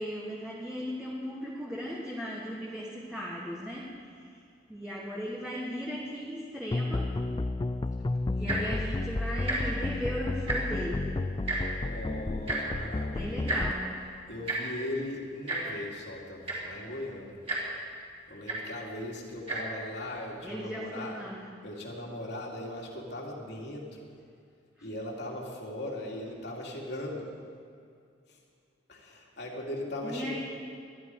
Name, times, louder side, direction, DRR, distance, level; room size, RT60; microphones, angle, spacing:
voice 1, 0.0-4.4 4.7-7.1 8.3-11.2 13.1-14.0 20.4-21.5 24.8-24.9 30.0-30.4, equal, 5° right, -5 dB, 1.6 m, -37 dB
sound 1, 6.7-13.7, left 2 dB, 25° left, 0.3 m, -32 dB
Tick-tock, 8.4-8.7 9.4-9.6 9.9-10.0 10.3-10.8 11.5-11.6 12.5-12.6 13.5-13.6 14.5-14.6 15.5-15.6 16.2-16.3 16.4-16.8 17.5-17.6 18.5-18.6 19.4-19.6 20.3-20.4, right 2 dB, 30° right, 4.1 m, -31 dB
voice 2, 11.8-13.7 14.3-17.4 18.3-21.1 21.6-24.1 24.8-27.3 28.9-30.4, left 1 dB, 65° left, -2 dB, 2.9 m, -39 dB
21.0 x 12.5 x 4.8 m, 2.3 s
head